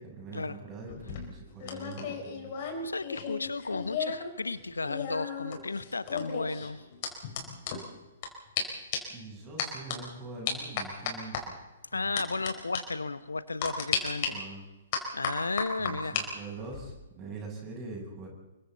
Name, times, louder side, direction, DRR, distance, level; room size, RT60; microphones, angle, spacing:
voice 1, 0.0-2.5 9.1-11.5 12.0-12.3 14.3-14.7 15.8-18.3, right 3 dB, 20° right, -1 dB, 7.9 m, -43 dB
sound 1, 0.9-4.3 4.6-8.3 8.6-8.7 8.9-9.2 9.6-10.0 10.5-11.4 12.2-12.5 12.7-12.8 13.6-14.3 14.9-16.2 16.6-16.9, left 7 dB, 40° left, 4.7 m, -34 dB
voice 2, 2.8-6.8 11.9-14.4 15.1-16.2, left 3 dB, 75° left, 15 dB, 1.0 m, -34 dB
29.0 x 23.0 x 4.1 m, 1.0 s
figure-of-eight pair, 120°, 0 cm